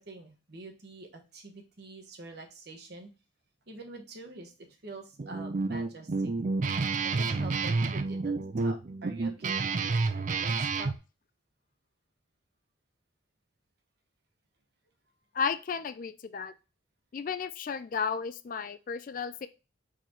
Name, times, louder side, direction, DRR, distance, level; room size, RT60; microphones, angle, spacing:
voice 1, 0.0-3.1 3.7-6.3 7.0-10.9, right 2 dB, 55° right, 3 dB, 1.2 m, -46 dB
Guitar, 5.2-11.0, right 3 dB, 40° right, 0.4 m, -29 dB
voice 2, 15.3-16.5 17.1-19.5, left 6 dB, 45° left, 13 dB, 0.3 m, -33 dB
4.2 x 4.0 x 3.0 m, 0.30 s
head